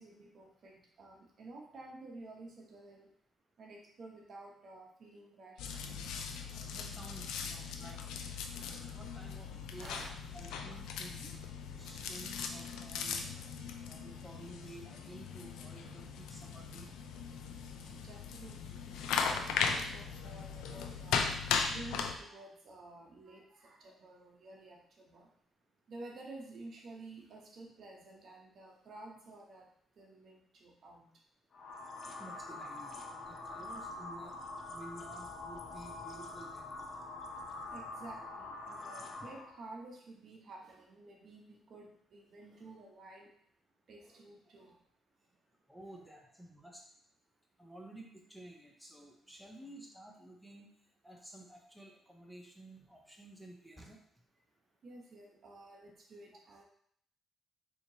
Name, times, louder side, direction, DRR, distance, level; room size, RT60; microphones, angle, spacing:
voice 1, 0.0-3.1 3.6-5.6 9.8-10.1 18.0-21.3 21.7-25.3 25.9-29.7 30.0-31.1 37.7-43.3 43.9-44.8 54.8-56.6, right 2 dB, 60° right, 0 dB, 0.9 m, -52 dB
sound 1, 5.6-22.2, left 6 dB, 90° left, 0.4 m, -38 dB
voice 2, 6.7-8.0 8.5-10.0 10.3-11.3 11.8-13.3 13.9-16.9 32.2-34.4 34.7-36.9 45.7-46.8 47.6-50.7 51.0-54.0, right 1 dB, ahead, 0 dB, 0.6 m, -52 dB
sound 2, 31.5-39.6, left 2 dB, 45° left, 0.6 m, -45 dB
4.3 x 2.9 x 2.8 m, 0.65 s
cardioid pair, 90°, 0 cm